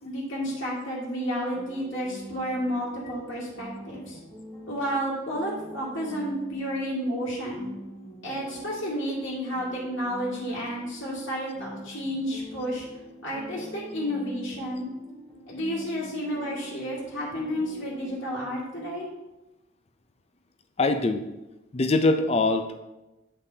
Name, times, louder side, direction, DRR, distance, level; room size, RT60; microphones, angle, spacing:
voice 1, 0.0-4.2 4.7-7.7 8.2-12.9 13.2-14.9 15.5-19.1, equal, 75° left, -7 dB, 2.0 m, -31 dB
sound 1, 1.3-18.1, right 1 dB, 15° left, 2.2 m, -44 dB
voice 2, 20.8-21.2 21.7-22.8, left 2 dB, 30° left, 8 dB, 0.4 m, -23 dB
8.2 x 5.5 x 2.7 m, 1.0 s
head